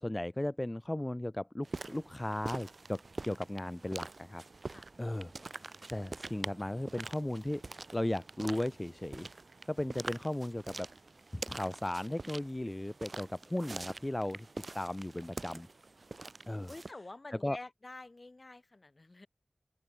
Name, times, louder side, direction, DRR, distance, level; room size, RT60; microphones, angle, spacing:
voice 1, 0.0-4.4 5.0-7.6 7.9-9.3 9.7-10.9 11.3-14.5 14.7-15.7 16.5-16.7 17.3-17.6, left 1 dB, 25° left, 0.6 m, -36 dB
sound 1, 1.6-16.9, right 3 dB, 65° right, 1.6 m, -45 dB
voice 2, 16.7-19.3, left 2 dB, 50° left, 1.9 m, -48 dB
open air
wide cardioid pair, 70°, 0 cm